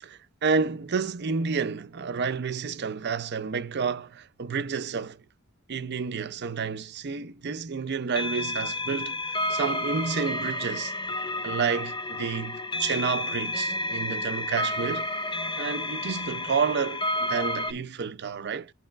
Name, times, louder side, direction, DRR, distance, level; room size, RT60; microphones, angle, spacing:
voice 1, 0.0-5.2 5.7-10.9 11.4-15.1 15.6-18.7, right 5 dB, 50° right, 0.6 m, -30 dB
sound 1, 8.1-17.7, left 1 dB, 20° left, 0.6 m, -31 dB
11.0 x 4.2 x 2.4 m
head